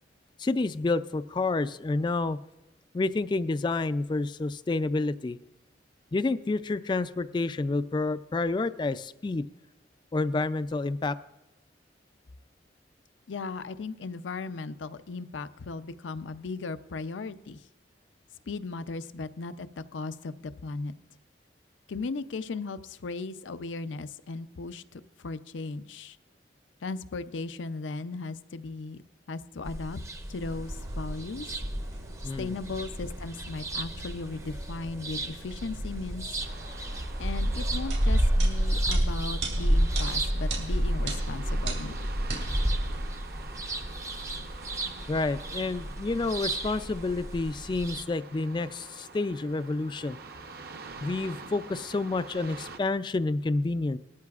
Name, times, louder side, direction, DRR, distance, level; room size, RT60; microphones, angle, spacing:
voice 1, 0.4-2.4 2.9-5.4 6.1-9.5 10.1-11.2 32.2-32.6 45.1-50.2 51.0-54.0, left 3 dB, 25° left, 13 dB, 0.3 m, -29 dB
voice 2, 13.3-17.6 18.5-19.7 19.9-20.9 21.9-26.2 26.8-29.0 29.3-30.0 30.3-31.5 32.4-36.2 37.2-42.1, left 3 dB, 80° left, 12 dB, 0.5 m, -37 dB
sound 1, 29.6-48.0, right 1 dB, 15° right, 0.6 m, -37 dB
sound 2, 30.4-43.0, equal, 75° right, 2.7 m, -30 dB
sound 3, 36.4-52.8, right 3 dB, 55° right, 0.8 m, -46 dB
19.5 x 13.0 x 2.4 m, 0.96 s
head